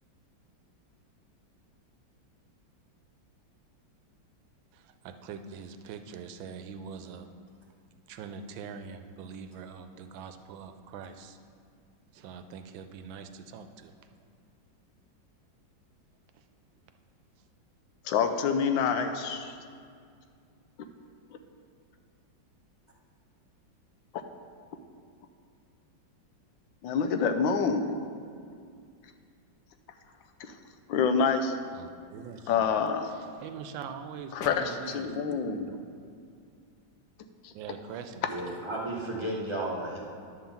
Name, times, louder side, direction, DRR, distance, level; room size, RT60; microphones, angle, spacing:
voice 1, 4.7-7.3 8.1-11.4 12.1-13.9 31.7-32.8 33.1-35.8 37.5-38.2, right 6 dB, 80° right, 8 dB, 1.3 m, -43 dB
voice 2, 18.0-19.6 26.8-27.9 30.4-30.5 30.9-31.6 32.5-33.1 34.3-35.7 37.4-37.5, left 6 dB, 80° left, 7 dB, 1.3 m, -27 dB
voice 3, 38.3-40.0, right 1 dB, 20° right, -4 dB, 0.8 m, -33 dB
10.5 x 3.9 x 7.1 m, 2.3 s
omnidirectional pair, 2.1 m